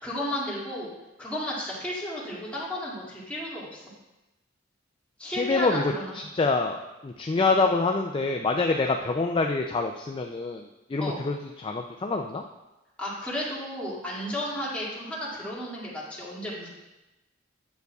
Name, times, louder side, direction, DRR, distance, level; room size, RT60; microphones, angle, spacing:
voice 1, 0.0-0.9 1.2-3.8 5.2-6.1 11.0-11.2 13.0-16.7, left 1 dB, 5° left, -7 dB, 2.2 m, -33 dB
voice 2, 5.3-10.6 10.9-12.4, left 3 dB, 25° left, 3 dB, 0.3 m, -26 dB
9.3 x 8.0 x 2.3 m, 1.0 s
head